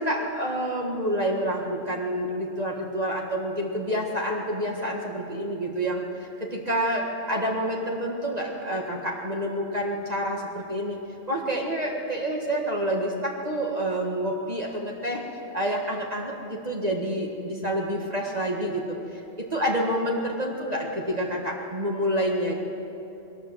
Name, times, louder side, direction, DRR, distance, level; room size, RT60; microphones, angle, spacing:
voice 1, 0.0-11.0 11.3-15.2 15.5-22.5, equal, 35° right, -1 dB, 1.8 m, -28 dB
21.0 x 18.5 x 7.4 m, 2.9 s
omnidirectional pair, 1.2 m